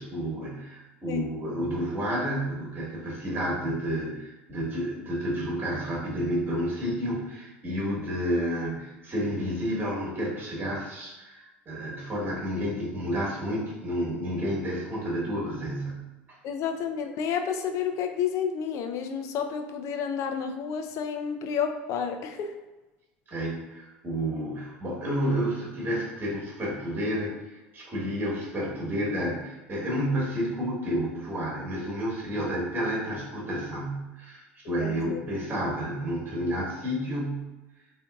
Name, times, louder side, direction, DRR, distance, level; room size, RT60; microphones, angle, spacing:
voice 1, 0.0-16.0 16.3-16.4 23.3-37.5, equal, 30° right, -5 dB, 1.1 m, -30 dB
voice 2, 16.4-22.6 34.8-35.2, left 7 dB, 55° left, 6 dB, 0.4 m, -30 dB
3.5 x 2.6 x 2.3 m, 1.1 s
hypercardioid pair, 85°, 6 cm